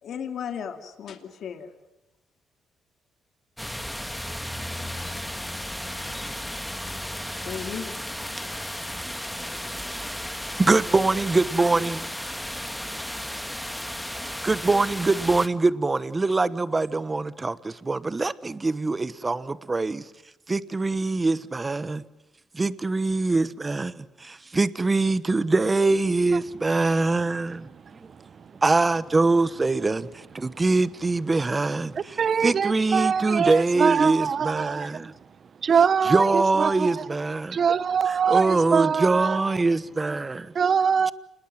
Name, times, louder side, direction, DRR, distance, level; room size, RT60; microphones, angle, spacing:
voice 1, 0.0-1.7 7.4-8.2, left 7 dB, 65° left, 2.5 m, -35 dB
sound 1, 3.6-15.5, equal, 5° left, 1.6 m, -34 dB
voice 2, 10.6-12.1 14.4-20.0 20.5-22.0 22.5-27.7 28.6-35.1 36.0-37.6 38.1-40.5, right 3 dB, 25° right, 1.1 m, -23 dB
voice 3, 32.2-34.9 35.6-37.0 37.5-39.4 40.5-41.1, right 6 dB, 50° right, 0.9 m, -23 dB
28.0 x 20.5 x 7.8 m
cardioid pair, 90°, 0 cm